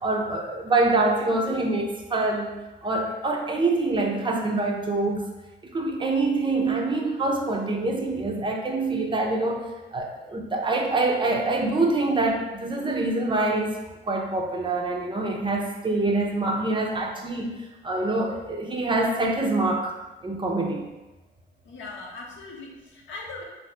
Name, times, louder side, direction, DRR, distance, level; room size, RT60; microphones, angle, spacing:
voice 1, 0.0-2.6 2.8-5.3 5.7-13.8 14.1-19.9 20.2-20.9, right 2 dB, 25° right, 0 dB, 0.5 m, -25 dB
voice 2, 21.6-23.4, left 3 dB, 75° left, -2 dB, 0.7 m, -39 dB
2.7 x 2.5 x 3.3 m, 1.1 s
cardioid pair, 90°, 20 cm